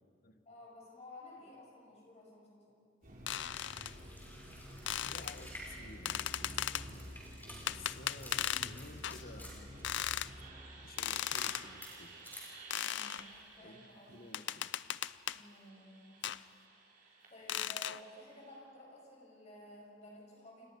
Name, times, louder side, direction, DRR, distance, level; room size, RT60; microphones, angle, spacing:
voice 1, 0.5-2.8 12.8-14.3 15.3-16.2 17.1-20.7, left 1 dB, 35° left, -2 dB, 7.7 m, -54 dB
sound 1, 3.0-18.6, right 1 dB, 50° right, 5.2 m, -52 dB
sound 2, 3.3-3.9 4.9-5.4 6.1-6.9 7.7-8.7 9.0-9.2 9.8-10.3 11.0-11.7 12.7-13.2 14.3-15.4 16.2-16.4 17.5-18.0, left 11 dB, 70° left, 0.5 m, -37 dB
sound 3, 3.5-9.8 10.9-12.5 12.8-13.4, left 1 dB, 10° left, 6.8 m, -53 dB
voice 2, 5.1-6.7 7.7-9.7 10.8-12.1 13.6-13.8 14.1-14.7, left 2 dB, 50° left, 7 dB, 1.6 m, -53 dB
29.5 x 26.5 x 5.5 m, 2.3 s
head